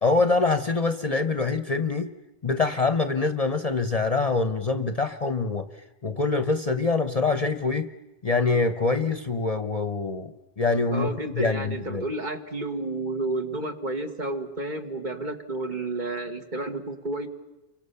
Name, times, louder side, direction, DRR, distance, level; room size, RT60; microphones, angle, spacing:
voice 1, 0.0-2.1 2.4-5.7 6.0-7.9 8.2-12.0, left 3 dB, 35° left, 10 dB, 1.0 m, -25 dB
voice 2, 10.9-17.3, right 2 dB, 40° right, 5 dB, 2.1 m, -31 dB
29.5 x 24.0 x 7.0 m, 0.99 s
omnidirectional pair, 1.2 m